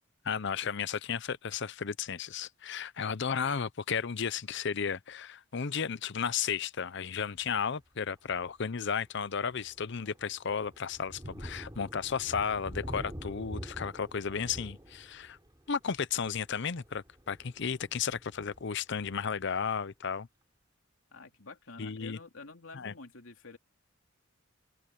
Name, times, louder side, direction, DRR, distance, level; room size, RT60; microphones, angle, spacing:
voice 1, 0.2-15.4 15.7-20.3 21.8-22.2 22.7-22.9, left 6 dB, 60° left, 0.7 m, -34 dB
Thunder, 7.4-7.7 8.3-8.4 8.9-19.4, equal, 20° right, 3.1 m, -46 dB
voice 2, 21.1-23.6, left 3 dB, 85° left, 2.9 m, -48 dB
open air
head